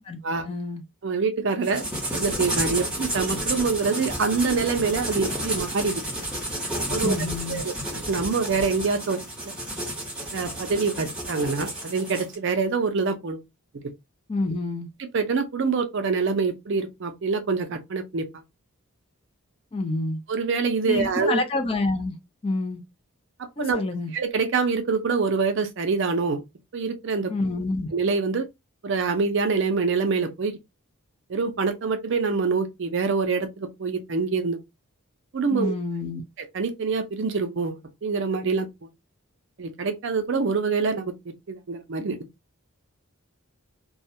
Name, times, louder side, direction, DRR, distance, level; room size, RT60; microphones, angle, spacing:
voice 1, 0.5-0.8 7.0-7.6 14.3-14.9 19.7-20.2 20.9-22.1 22.4-22.8 23.6-24.1 27.3-27.9 35.5-36.2, left 2 dB, 25° left, 0.4 m, -27 dB
voice 2, 1.0-1.9 2.1-6.0 6.9-7.1 7.5-9.5 10.3-13.4 13.8-13.9 15.1-18.3 20.3-21.4 23.6-23.8 24.1-26.4 26.7-27.3 27.9-28.5 28.8-30.6 31.3-34.6 35.3-35.7 36.5-38.9 39.6-41.1 41.5-42.3, right 4 dB, 55° right, 0.4 m, -25 dB
sound 1, 1.6-12.4, right 1 dB, 5° right, 0.7 m, -31 dB
2.3 x 2.0 x 2.7 m
head